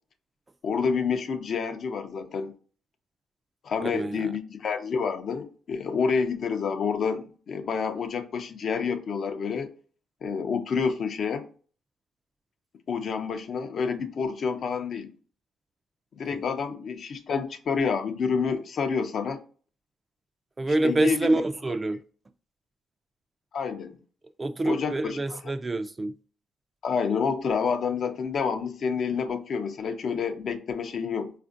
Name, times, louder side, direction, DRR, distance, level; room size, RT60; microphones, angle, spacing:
voice 1, 0.6-2.5 3.6-9.7 10.2-11.5 12.9-15.1 16.2-19.4 20.8-21.3 23.5-24.0 24.6-25.4 26.8-31.3, left 5 dB, 55° left, 0.5 m, -28 dB
voice 2, 3.8-4.3 16.3-16.4 20.6-22.0 24.4-26.2, right 2 dB, 25° right, 0.3 m, -26 dB
4.2 x 2.5 x 2.5 m
cardioid pair, 90°, 0 cm